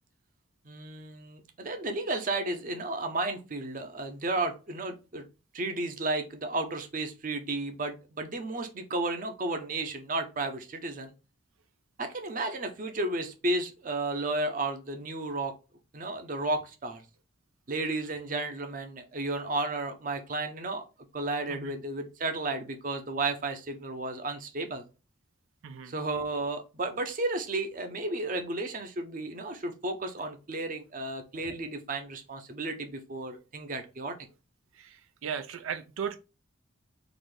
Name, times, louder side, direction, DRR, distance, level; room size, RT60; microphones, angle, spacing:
voice 1, 0.7-5.3 5.5-11.1 12.0-15.5 15.9-17.0 17.7-20.8 21.1-24.9 25.9-34.2, right 2 dB, 40° right, 0.7 m, -33 dB
voice 2, 34.7-36.2, right 7 dB, 85° right, 0.4 m, -37 dB
4.0 x 2.5 x 3.2 m
head